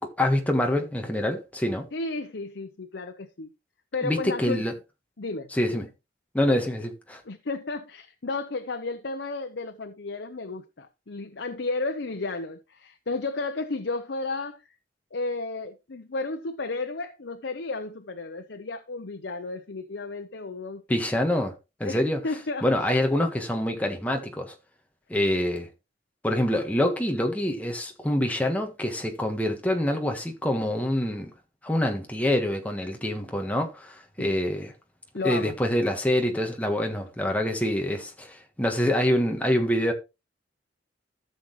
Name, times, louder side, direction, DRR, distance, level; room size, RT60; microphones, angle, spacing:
voice 1, 0.0-1.9 4.0-4.7 5.5-5.9 6.3-7.2 20.9-21.5 21.8-22.2 22.6-24.6 25.1-25.7 26.2-31.3 31.6-34.7 35.2-39.9, left 1 dB, 10° left, 1.5 m, -26 dB
voice 2, 1.9-3.5 3.9-4.6 5.2-5.9 7.2-14.6 15.1-21.0 21.8-22.7 34.2-34.4 35.1-35.6, left 3 dB, 70° left, 0.8 m, -33 dB
14.0 x 6.4 x 3.1 m
head